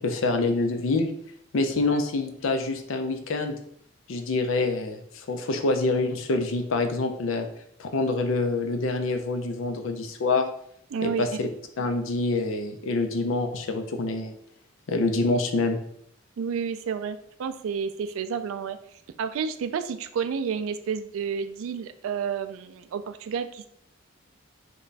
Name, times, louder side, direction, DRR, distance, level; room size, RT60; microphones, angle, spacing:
voice 1, 0.0-1.1 1.5-3.6 4.1-7.5 7.8-10.5 11.0-11.5 11.8-14.3 14.9-15.8, left 3 dB, 75° left, 6 dB, 0.5 m, -26 dB
voice 2, 10.9-11.2 16.4-18.8 19.2-23.7, right 6 dB, 80° right, 10 dB, 0.3 m, -30 dB
3.2 x 2.2 x 3.9 m, 0.70 s
head